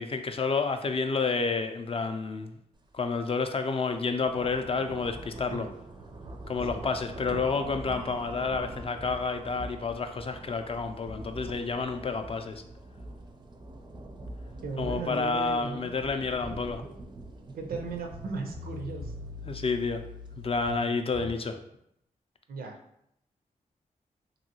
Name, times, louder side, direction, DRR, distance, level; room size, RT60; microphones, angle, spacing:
voice 1, 0.0-2.5 2.9-5.7 6.5-12.6 14.8-16.8 19.5-20.0 20.4-21.6, left 4 dB, 40° left, 7 dB, 0.3 m, -30 dB
sound 1, 2.9-3.1 3.5-20.7, right 1 dB, 30° right, 0.4 m, -44 dB
Bell, 7.8-14.7, equal, 20° left, 0.7 m, -59 dB
voice 2, 14.6-15.9 17.5-19.3 22.5-22.8, right 4 dB, 85° right, 3 dB, 0.5 m, -36 dB
sound 2, 17.8-17.9 18.1-21.3, left 2 dB, 85° left, 0.7 m, -42 dB
2.7 x 2.7 x 2.7 m, 0.75 s
cardioid pair, 50°, 15 cm